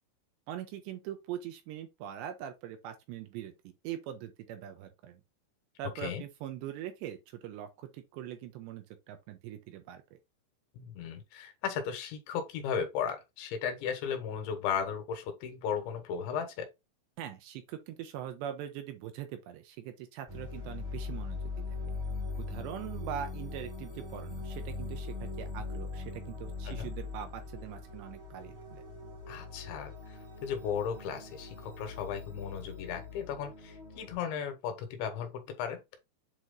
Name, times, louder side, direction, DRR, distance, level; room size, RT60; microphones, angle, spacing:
voice 1, 0.5-5.2 5.8-10.2 17.2-21.4 22.4-28.8, right 10 dB, 80° right, 2.8 m, -42 dB
voice 2, 10.8-16.7 26.7-26.9 29.3-35.8, left 7 dB, 75° left, 3.4 m, -36 dB
sound 1, 20.3-34.1, left 3 dB, 20° right, 0.5 m, -41 dB
8.1 x 3.0 x 3.8 m
omnidirectional pair, 5.3 m